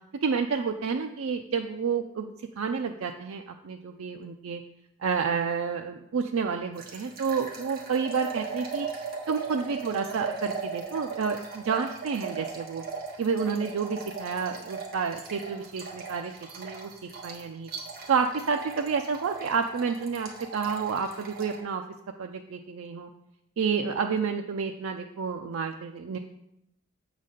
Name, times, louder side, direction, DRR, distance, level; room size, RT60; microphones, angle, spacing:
voice 1, 0.2-4.6 5.0-8.9 9.3-12.8 13.2-16.9 17.2-17.7 18.1-21.8 22.2-23.1 23.6-26.2, right 5 dB, 80° right, 5 dB, 0.4 m, -30 dB
sound 1, 6.8-21.6, right 5 dB, 45° right, 1.3 m, -38 dB
7.3 x 4.1 x 6.3 m, 0.84 s
head